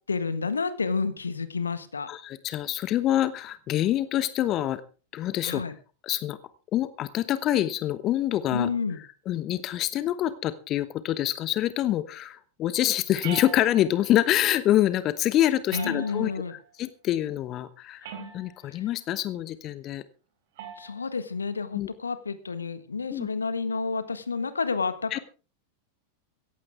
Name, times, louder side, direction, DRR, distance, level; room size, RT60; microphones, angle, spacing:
voice 1, 0.1-2.1 5.4-5.7 8.5-9.0 15.7-16.5 18.7-18.9 20.8-25.2, left 4 dB, 75° left, 13 dB, 1.5 m, -30 dB
voice 2, 2.1-4.8 5.1-5.6 6.0-6.4 6.7-8.7 9.3-18.1 18.3-20.0 21.7-21.9 23.1-23.3 25.1-25.2, left 13 dB, 35° left, 15 dB, 0.9 m, -26 dB
sound 1, 13.2-14.1 15.7-16.5 18.0-18.7 20.6-21.0, right 7 dB, 55° right, 4.0 m, -40 dB
17.0 x 15.0 x 3.5 m, 0.35 s
figure-of-eight pair, 90°, 0 cm